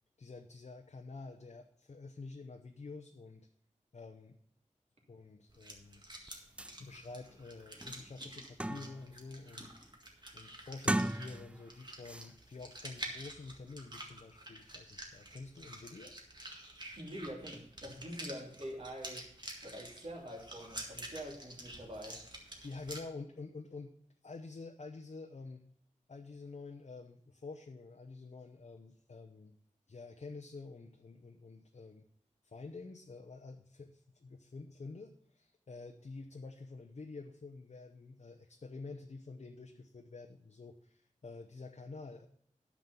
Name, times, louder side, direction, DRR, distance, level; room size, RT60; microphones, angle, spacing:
voice 1, 0.2-3.5 3.9-4.4 5.1-6.1 6.8-9.7 10.3-16.2 22.6-23.9 24.2-25.6 26.1-29.6 29.9-32.1 32.4-42.3, left 3 dB, 60° left, 5 dB, 0.7 m, -48 dB
sound 1, 5.5-23.0, right 1 dB, 35° right, 1.8 m, -49 dB
sound 2, 6.3-6.4 6.6-6.8 7.3-7.4 7.8-9.1 9.5-9.9 10.7-11.7 12.0-12.3, right 1 dB, 10° right, 0.3 m, -37 dB
voice 2, 17.0-19.2 19.6-22.2, equal, 50° right, -1 dB, 2.7 m, -45 dB
9.6 x 6.1 x 6.7 m, 0.66 s
wide cardioid pair, 80°, 13 cm